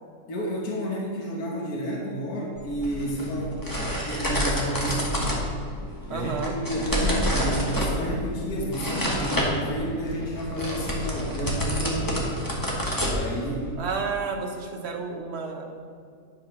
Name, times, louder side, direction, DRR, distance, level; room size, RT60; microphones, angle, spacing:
voice 1, 0.3-5.5 6.1-12.4 13.0-13.7, equal, 80° left, -2 dB, 1.8 m, -30 dB
sound 1, 2.6-13.7, equal, 15° left, 1.2 m, -29 dB
voice 2, 6.1-6.6 13.8-15.7, right 5 dB, 50° right, 3 dB, 1.0 m, -31 dB
10.0 x 4.3 x 5.8 m, 2.2 s
omnidirectional pair, 1.6 m